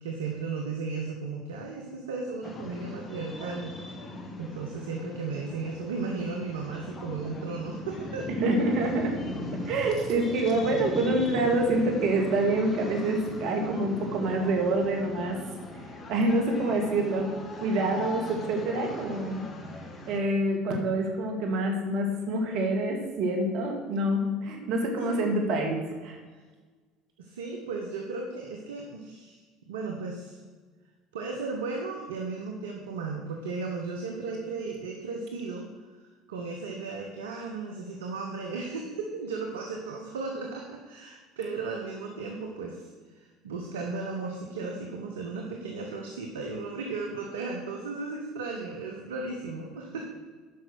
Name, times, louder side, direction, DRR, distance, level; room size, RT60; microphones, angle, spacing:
voice 1, 0.0-3.7 4.4-8.3 25.1-25.3 27.2-29.4 29.7-30.4 31.1-35.7 36.3-42.9 43.1-50.0, right 4 dB, 85° right, 1 dB, 1.1 m, -35 dB
sound 1, 2.4-20.2, left 1 dB, 30° left, 1.7 m, -39 dB
voice 2, 8.3-9.2 9.7-15.4 16.1-19.5 20.1-25.8 26.0-26.2, right 2 dB, 65° right, 2 dB, 2.3 m, -26 dB
9.6 x 5.8 x 6.3 m, 1.4 s
hypercardioid pair, 75°, 0 cm